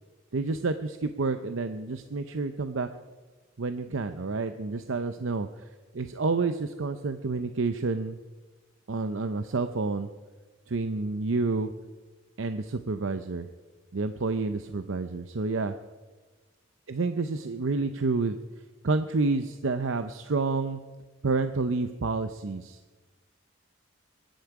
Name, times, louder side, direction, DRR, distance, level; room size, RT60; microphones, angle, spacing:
voice 1, 0.3-2.9 3.6-5.5 5.9-8.2 8.9-10.1 10.7-11.7 12.4-13.5 13.9-15.7 16.9-18.4 18.8-20.8 21.2-22.8, right 3 dB, 70° right, 9 dB, 0.7 m, -29 dB
23.0 x 10.5 x 4.8 m, 1.3 s
head